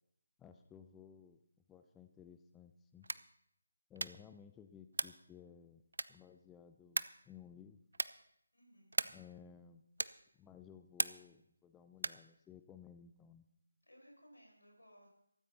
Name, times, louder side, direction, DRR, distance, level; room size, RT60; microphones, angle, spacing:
voice 1, 0.4-1.4 1.7-3.1 3.9-5.8 6.1-7.8 9.1-9.8 10.3-13.4, left 8 dB, 10° left, 8 dB, 0.4 m, -57 dB
sound 1, 3.0-3.4 3.9-4.3 4.9-5.3 5.9-6.3 6.9-7.3 7.9-8.3 8.9-9.3 10.0-10.3 11.0-11.4 12.0-12.3, right 3 dB, 65° right, 0.5 m, -38 dB
voice 2, 8.5-9.0 13.8-15.1, equal, 75° left, 0 dB, 6.5 m, -62 dB
15.5 x 14.0 x 4.1 m, 0.75 s
figure-of-eight pair, 155°, 0 cm